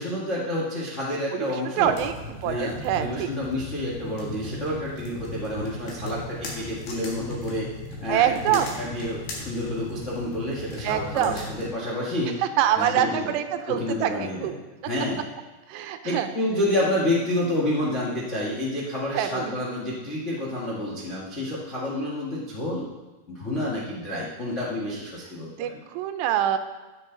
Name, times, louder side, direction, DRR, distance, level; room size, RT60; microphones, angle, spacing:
voice 1, 0.0-1.9 2.4-7.7 8.0-12.3 12.7-13.3 13.6-14.5 14.9-15.2 16.0-22.9 23.3-25.8, left 1 dB, 90° left, -5 dB, 0.6 m, -29 dB
voice 2, 1.3-3.3 8.1-8.7 10.8-11.5 12.6-14.1 14.4-14.5 15.7-16.3 19.1-19.5 21.9-22.1 25.6-26.6, right 10 dB, 90° right, 8 dB, 3.0 m, -25 dB
sound 1, 1.8-11.7, left 2 dB, 70° left, 4.0 m, -37 dB
14.5 x 9.5 x 3.9 m, 1.2 s
omnidirectional pair, 4.8 m